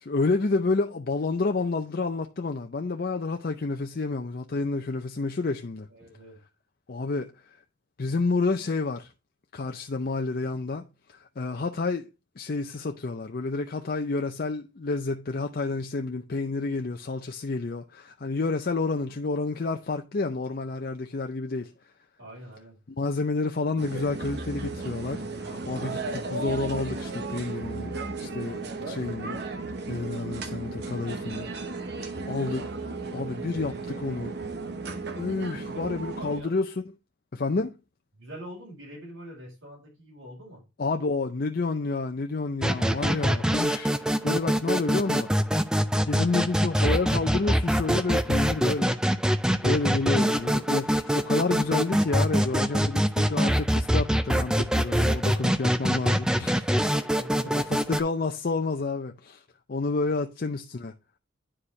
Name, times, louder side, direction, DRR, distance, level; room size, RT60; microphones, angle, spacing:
voice 1, 0.0-5.9 6.9-7.3 8.0-9.1 9.5-12.1 12.4-21.7 22.9-27.9 28.2-29.4 29.9-31.5 32.0-32.7 33.1-34.3 35.2-36.7 37.3-37.7 40.8-45.4 46.0-49.0 49.6-56.6 57.5-59.4 59.7-60.9, left 3 dB, 45° left, 0.5 m, -29 dB
voice 2, 5.9-6.4 22.2-22.8 35.6-36.5 38.1-40.6 48.1-48.2 56.5-57.7 60.0-60.2, equal, 80° right, 4.7 m, -44 dB
sound 1, 23.8-36.4, right 3 dB, 55° right, 0.9 m, -35 dB
sound 2, 42.6-58.0, equal, 5° right, 0.4 m, -24 dB
9.9 x 4.8 x 3.2 m
head